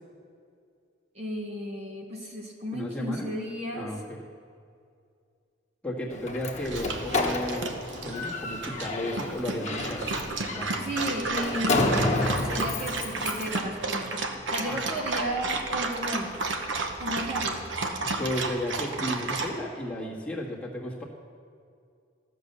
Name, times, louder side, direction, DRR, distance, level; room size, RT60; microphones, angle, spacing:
voice 1, 1.2-3.9 10.8-12.1 12.4-14.2 14.5-16.3 17.0-17.7, equal, 35° right, 0 dB, 1.2 m, -34 dB
voice 2, 2.7-3.3 3.7-4.2 5.8-7.7 8.0-10.1 10.5-11.3 14.6-14.8 18.2-21.0, left 1 dB, 5° left, -5 dB, 1.7 m, -34 dB
Slam, 6.1-13.6, left 2 dB, 35° left, 1.2 m, -30 dB
Dog, 6.6-19.5, right 3 dB, 65° right, 1.0 m, -32 dB
14.5 x 6.8 x 6.7 m, 2.3 s
head